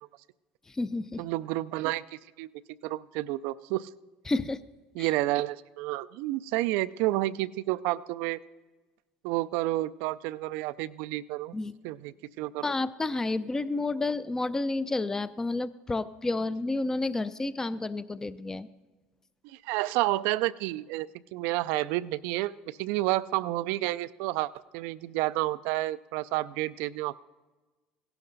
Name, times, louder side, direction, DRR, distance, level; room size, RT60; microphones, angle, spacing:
voice 1, 0.7-1.3 4.3-4.6 5.0-5.1 11.5-11.7 12.6-18.7, left 2 dB, 15° left, 16 dB, 0.5 m, -30 dB
voice 2, 1.2-2.5 2.8-3.9 5.0-8.4 9.2-11.5 11.8-12.7 19.4-27.2, right 17 dB, 75° right, 16 dB, 0.4 m, -30 dB
16.5 x 11.5 x 4.0 m, 1.2 s
supercardioid pair, 115°, 4 cm